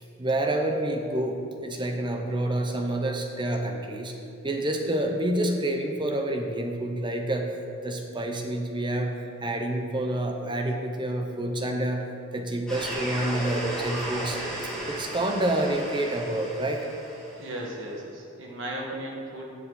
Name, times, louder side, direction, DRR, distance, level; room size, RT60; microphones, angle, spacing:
voice 1, 0.2-4.2 4.4-7.5 7.8-9.1 9.4-12.1 12.3-14.4 14.9-16.9, right 1 dB, 20° right, 3 dB, 0.9 m, -28 dB
sound 1, 12.7-17.6, right 1 dB, 5° left, 2.3 m, -35 dB
voice 2, 17.4-19.4, right 1 dB, 60° right, -2 dB, 1.7 m, -36 dB
17.0 x 6.6 x 4.1 m, 2.6 s
head